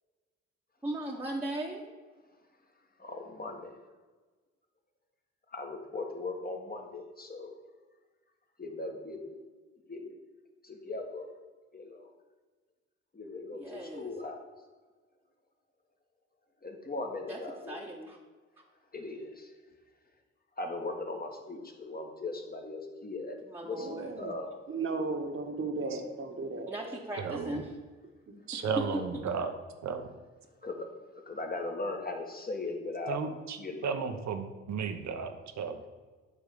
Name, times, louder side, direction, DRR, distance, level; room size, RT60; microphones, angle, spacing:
voice 1, 0.8-1.9 13.5-14.1 17.3-17.4 17.7-18.2 23.5-24.1 26.7-27.7 28.5-29.0, right 1 dB, 10° right, -2 dB, 1.2 m, -37 dB
voice 2, 3.0-3.8 5.5-7.5 8.6-9.4 9.9-10.2 10.6-11.3 11.7-12.1 13.1-14.4 16.6-17.8 18.9-19.5 20.6-23.4 23.6-24.8 28.6-29.1 30.6-33.2 33.6-34.1, left 2 dB, 30° left, 3 dB, 1.6 m, -39 dB
voice 3, 23.7-24.3 24.7-26.7 28.3-28.4, right 3 dB, 45° right, 5 dB, 1.3 m, -35 dB
voice 4, 27.2-27.6 28.5-29.5 29.8-30.2 33.1-33.6 33.8-35.8, right 6 dB, 65° right, 8 dB, 1.0 m, -34 dB
8.4 x 3.5 x 6.7 m, 1.4 s
supercardioid pair, 55°, 29 cm